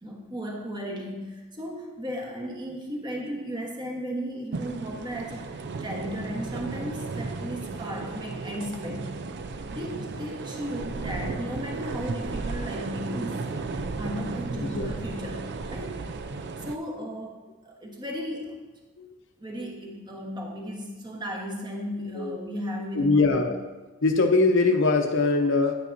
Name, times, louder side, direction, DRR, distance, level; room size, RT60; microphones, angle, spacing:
voice 1, 0.0-5.4 5.8-9.1 9.7-13.4 13.9-16.1 16.6-17.4 17.6-18.6 19.4-23.3, equal, 20° right, 0 dB, 1.2 m, -35 dB
sound 1, 4.5-16.8, right 3 dB, 50° right, 0.5 m, -34 dB
voice 2, 14.6-14.9 19.0-19.1 19.6-19.7 22.1-22.4 22.9-23.5 24.0-25.7, left 3 dB, 60° left, 4 dB, 0.8 m, -22 dB
9.8 x 9.3 x 2.6 m, 1.2 s
head